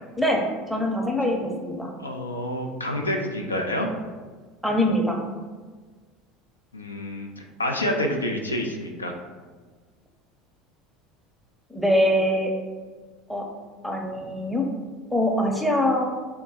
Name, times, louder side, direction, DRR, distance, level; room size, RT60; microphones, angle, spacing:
voice 1, 0.2-1.9 4.6-5.2 11.7-12.5 13.3-13.5 13.8-14.7 15.1-16.1, left 1 dB, ahead, 1 dB, 0.7 m, -23 dB
voice 2, 2.0-3.9 6.7-7.3 7.6-9.1, left 1 dB, 85° left, 3 dB, 0.3 m, -28 dB
3.4 x 2.2 x 4.1 m, 1.4 s
figure-of-eight pair, 70°, 0 cm